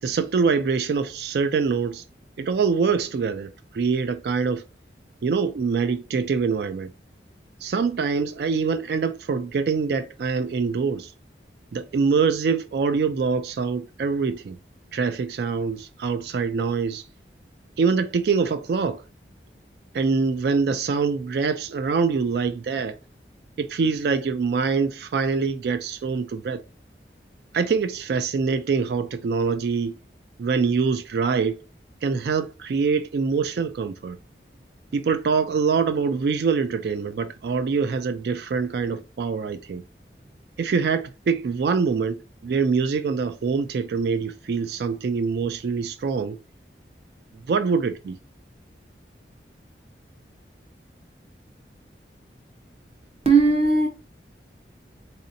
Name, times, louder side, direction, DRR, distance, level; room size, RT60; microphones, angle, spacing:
voice 1, 0.0-2.0 2.4-4.6 5.2-6.9 7.6-11.1 11.7-14.6 14.9-17.0 17.8-19.0 19.9-23.0 23.6-26.6 27.5-30.0 30.4-31.6 32.0-34.2 34.9-39.8 40.6-46.4 47.5-48.2, right 5 dB, 65° right, 0.3 m, -24 dB
voice 2, 53.3-53.9, right 4 dB, 35° right, 0.8 m, -17 dB
4.1 x 2.7 x 2.6 m
head